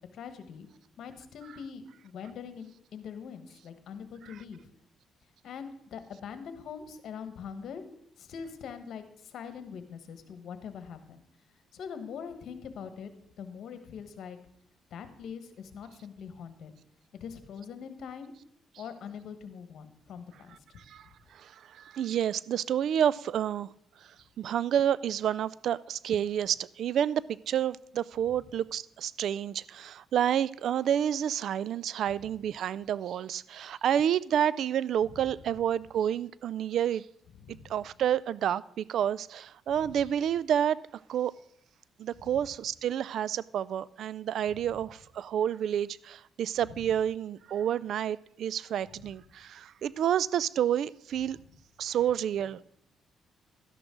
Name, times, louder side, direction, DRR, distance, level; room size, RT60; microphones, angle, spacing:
voice 1, 0.1-0.7 1.0-4.7 5.4-7.8 8.2-11.2 11.7-13.1 13.4-14.4 14.9-16.7 17.2-18.3 18.8-20.6 35.0-35.2 37.3-37.7 39.8-39.9 44.5-44.7 46.7-46.9 49.0-49.1, left 7 dB, 70° left, 1.3 m, -43 dB
voice 2, 21.3-23.7 24.4-37.0 37.7-40.8 41.1-41.3 42.0-51.4 51.8-52.6, right 9 dB, 70° right, 0.3 m, -29 dB
12.5 x 11.0 x 3.8 m
cardioid pair, 90°, 0 cm